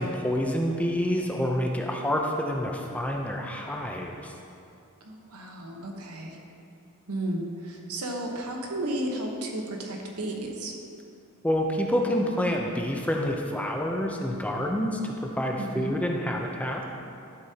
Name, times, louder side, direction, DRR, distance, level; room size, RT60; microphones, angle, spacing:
voice 1, 0.0-4.3 11.4-16.9, equal, 5° left, 0 dB, 0.5 m, -28 dB
voice 2, 5.0-6.4 7.1-10.7 15.6-15.9, right 1 dB, 85° right, 1 dB, 1.1 m, -33 dB
12.0 x 7.4 x 2.8 m, 2.5 s
head